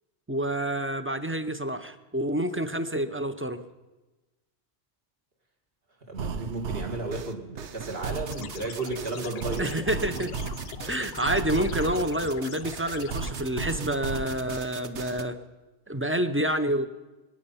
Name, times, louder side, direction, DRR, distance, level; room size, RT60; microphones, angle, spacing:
voice 1, 0.3-3.6 9.6-10.3 10.9-15.4 15.9-16.8, right 1 dB, 15° right, 10 dB, 0.5 m, -28 dB
voice 2, 6.1-9.8 10.1-10.3, right 3 dB, 50° right, 1 dB, 2.5 m, -33 dB
sound 1, 6.2-15.2, right 5 dB, 70° right, 1.1 m, -35 dB
sound 2, 8.3-13.3, left 7 dB, 50° left, 0.5 m, -43 dB
26.0 x 9.1 x 5.6 m, 1.1 s
omnidirectional pair, 1.2 m